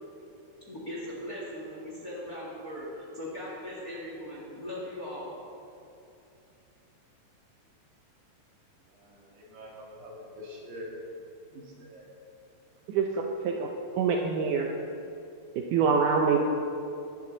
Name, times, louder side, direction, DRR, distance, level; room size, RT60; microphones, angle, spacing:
voice 1, 0.7-2.9 3.1-5.4, left 1 dB, 30° left, -5 dB, 1.9 m, -39 dB
voice 2, 8.9-10.9 11.5-12.0, left 1 dB, 65° right, -3 dB, 3.9 m, -45 dB
voice 3, 12.9-13.7 14.0-14.7 15.7-16.4, right 5 dB, 80° right, 1 dB, 1.8 m, -25 dB
19.5 x 10.5 x 4.0 m, 2.7 s
omnidirectional pair, 4.6 m